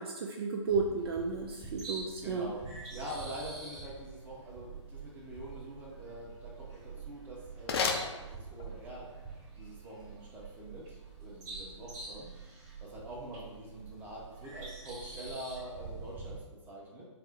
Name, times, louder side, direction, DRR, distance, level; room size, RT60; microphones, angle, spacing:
voice 1, 0.0-2.5, right 4 dB, 50° right, 2 dB, 0.4 m, -33 dB
sound 1, 0.6-16.4, right 4 dB, 35° right, 1.5 m, -46 dB
voice 2, 2.2-9.1 9.5-12.3 12.8-17.0, right 1 dB, 10° right, -4 dB, 0.7 m, -45 dB
sound 2, 6.9-8.9, left 5 dB, 50° left, 0.5 m, -35 dB
4.3 x 2.0 x 3.6 m, 1.2 s
hypercardioid pair, 135°, 16 cm